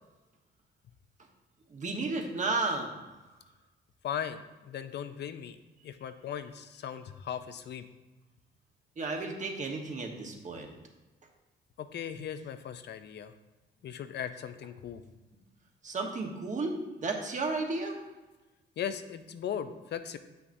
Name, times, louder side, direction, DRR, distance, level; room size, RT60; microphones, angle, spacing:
voice 1, 1.7-3.0 9.0-10.7 15.8-16.7 17.0-18.0, right 3 dB, 40° right, 2 dB, 1.2 m, -33 dB
voice 2, 4.0-5.6 5.8-7.8 11.8-13.3 13.8-15.0 18.8-20.2, left 8 dB, 60° left, 10 dB, 0.5 m, -38 dB
8.0 x 5.8 x 2.7 m, 1.1 s
cardioid pair, 90°, 20 cm